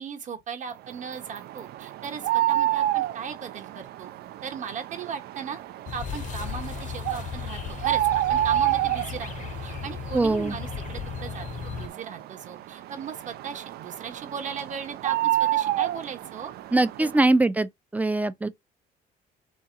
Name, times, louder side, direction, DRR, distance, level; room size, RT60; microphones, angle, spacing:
voice 1, 0.0-4.1 4.4-5.6 5.9-8.0 8.3-9.3 9.6-16.5 17.0-17.2, right 6 dB, 45° right, 1.2 m, -37 dB
sound 1, 0.9-17.2, right 14 dB, 70° right, 0.4 m, -30 dB
sound 2, 5.9-11.9, left 8 dB, 50° left, 0.7 m, -36 dB
voice 2, 10.1-10.6 16.7-18.5, right 2 dB, 10° right, 0.4 m, -22 dB
3.7 x 2.8 x 3.6 m
cardioid pair, 110°, 17 cm